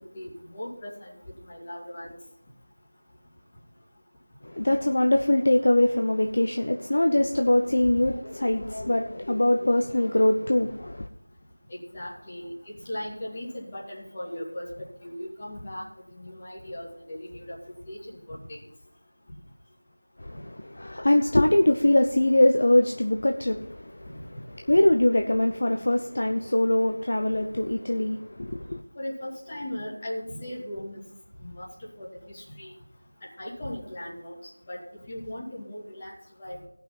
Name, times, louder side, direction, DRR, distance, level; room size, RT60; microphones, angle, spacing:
voice 1, 0.1-1.1 1.5-2.1 7.9-8.0 11.7-17.6 17.9-18.7 29.0-31.0 31.4-32.7 33.4-34.3 34.7-34.8 35.1-36.1 36.4-36.6, left 1 dB, 20° left, 2.7 m, -38 dB
voice 2, 4.4-11.1 20.2-24.0 24.7-28.8, left 1 dB, 45° left, 0.8 m, -23 dB
17.0 x 5.9 x 5.7 m
figure-of-eight pair, 170°, 0 cm